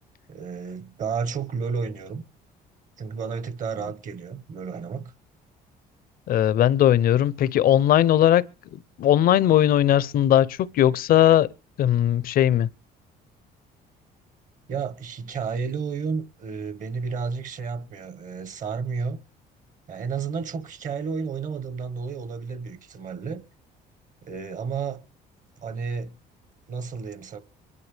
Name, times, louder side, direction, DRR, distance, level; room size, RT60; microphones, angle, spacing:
voice 1, 0.3-2.2 3.0-5.1 14.7-19.2 19.9-23.4 24.2-25.0 25.6-26.2 26.7-27.4, right 5 dB, 50° right, 1.4 m, -31 dB
voice 2, 6.3-8.4 8.7-11.5 11.8-12.7, left 11 dB, 60° left, 0.6 m, -19 dB
24.5 x 11.0 x 3.3 m
cardioid pair, 110°, 17 cm